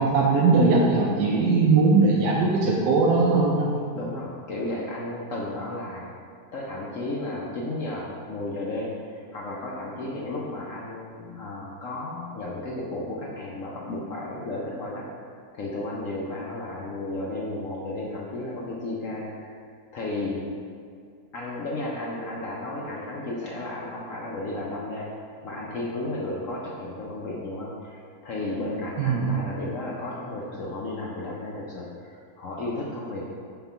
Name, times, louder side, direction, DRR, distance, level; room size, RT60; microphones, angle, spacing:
voice 1, 0.0-3.7 29.0-29.3, right 3 dB, 85° right, -3 dB, 1.2 m, -20 dB
voice 2, 3.9-6.1 6.5-8.9 9.3-19.6 19.9-20.5 21.3-25.1 25.4-33.3, left 2 dB, 60° left, -4 dB, 0.9 m, -33 dB
4.4 x 3.9 x 5.6 m, 2.3 s
omnidirectional pair, 1.8 m